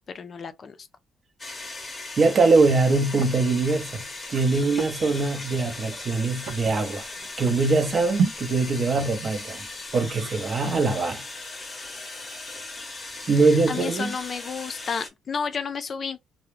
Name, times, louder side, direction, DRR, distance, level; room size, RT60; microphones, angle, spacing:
voice 1, 0.1-0.8 13.4-16.2, left 5 dB, 45° left, 0.3 m, -31 dB
sound 1, 1.4-15.1, left 3 dB, 30° left, 0.7 m, -38 dB
voice 2, 2.2-4.0 4.3-7.1 7.4-9.7 9.9-11.2 13.3-14.2, right 3 dB, 45° right, 0.6 m, -22 dB
sound 2, 3.0-3.6 3.9-8.4 8.6-10.8, right 5 dB, 90° right, 0.6 m, -33 dB
2.3 x 2.1 x 3.1 m
cardioid pair, 90°, 0 cm